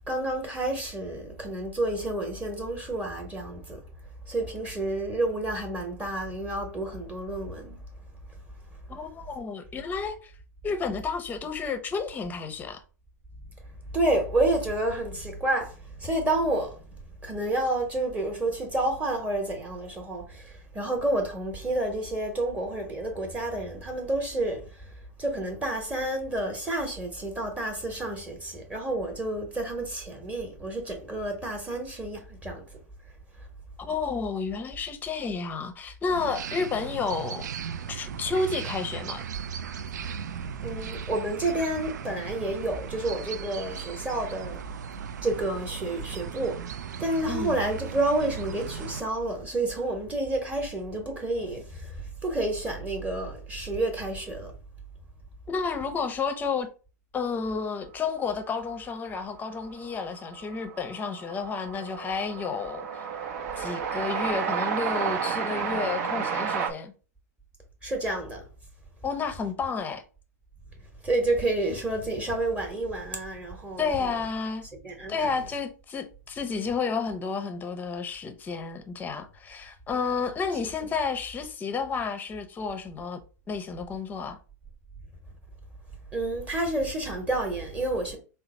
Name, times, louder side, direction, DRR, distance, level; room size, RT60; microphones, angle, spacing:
voice 1, 0.1-3.8 4.3-7.8 13.9-16.8 17.2-24.9 25.2-32.6 40.6-44.6 45.2-46.6 47.0-54.5 67.8-68.5 71.0-74.1 74.8-75.3 86.1-88.2, right 2 dB, 15° right, 0.9 m, -29 dB
voice 2, 8.9-10.3 10.6-12.8 33.8-37.5 37.9-39.2 47.3-47.6 55.5-56.7 57.1-63.0 63.6-66.9 69.0-70.0 73.8-74.7 75.1-83.2 83.5-84.4, left 5 dB, 20° left, 0.6 m, -31 dB
sound 1, 36.1-49.0, right 7 dB, 85° right, 0.3 m, -37 dB
Train, 59.3-59.4 59.6-66.7, right 6 dB, 65° right, 0.7 m, -31 dB
3.9 x 2.0 x 4.1 m
hypercardioid pair, 115°, 9 cm